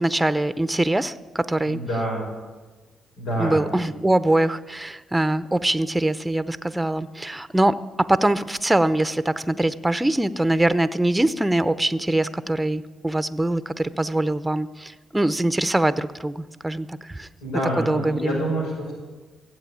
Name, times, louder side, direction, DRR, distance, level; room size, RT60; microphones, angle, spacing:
voice 1, 0.0-1.8 3.4-17.3 17.8-18.4, right 1 dB, 10° right, 13 dB, 0.7 m, -23 dB
voice 2, 1.6-2.3 3.2-3.8 17.4-19.0, right 1 dB, 90° left, -3 dB, 5.9 m, -27 dB
16.0 x 7.9 x 8.6 m, 1.3 s
supercardioid pair, 65°, 0 cm